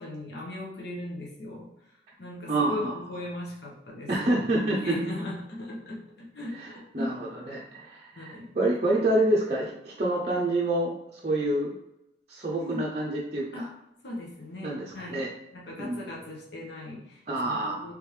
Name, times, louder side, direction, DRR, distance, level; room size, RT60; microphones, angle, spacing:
voice 1, 0.0-1.7 2.2-4.4 4.8-7.1 8.1-8.5 12.5-12.9 13.5-13.7 14.0-15.2 15.5-17.9, left 1 dB, 65° left, -3 dB, 1.0 m, -38 dB
voice 2, 2.5-3.0 4.1-5.1 6.5-11.7 12.3-13.7 14.6-15.3 15.8-16.1 17.3-17.8, right 1 dB, 35° right, -5 dB, 0.5 m, -28 dB
3.4 x 3.4 x 3.2 m, 0.84 s
head